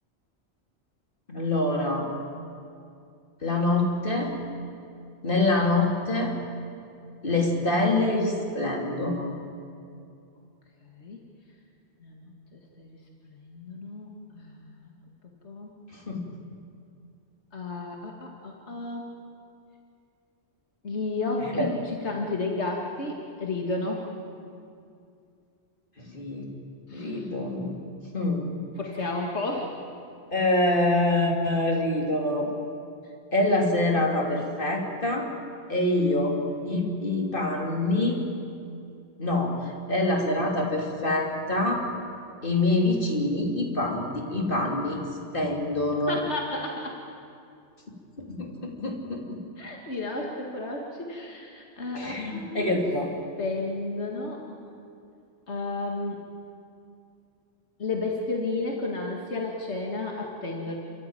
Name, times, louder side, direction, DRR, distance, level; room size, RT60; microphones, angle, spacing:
voice 1, 1.3-2.1 3.4-4.4 5.2-6.3 7.2-9.3 15.9-16.4 21.4-21.7 26.0-26.5 26.9-27.8 28.1-28.5 30.3-32.5 33.3-35.3 35.7-36.4 36.6-38.2 39.2-41.8 42.4-45.0 45.3-46.2 48.2-49.4 51.9-53.1, left 2 dB, 50° left, 0 dB, 3.5 m, -25 dB
voice 2, 10.8-11.2 12.0-13.0 13.3-14.1 14.3-14.9 15.4-15.7 17.5-19.1 20.8-24.1 26.9-27.3 28.8-29.7 46.1-46.9 49.6-52.8 53.4-54.4 55.5-56.2 57.8-60.8, left 2 dB, 75° left, 0 dB, 2.4 m, -32 dB
30.0 x 14.0 x 9.1 m, 2.5 s
omnidirectional pair, 1.2 m